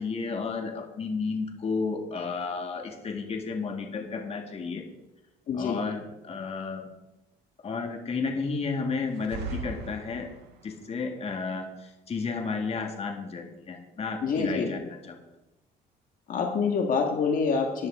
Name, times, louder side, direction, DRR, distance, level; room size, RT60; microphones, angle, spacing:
voice 1, 0.0-4.8 5.6-6.9 7.6-10.3 10.6-15.2, left 4 dB, 35° left, 3 dB, 2.0 m, -32 dB
voice 2, 5.5-5.8 14.2-14.7 16.3-17.9, left 5 dB, 55° left, 2 dB, 1.7 m, -26 dB
sound 1, 9.1-10.7, right 4 dB, 80° right, 1.6 m, -38 dB
14.0 x 10.5 x 3.7 m, 0.97 s
cardioid pair, 110°, 17 cm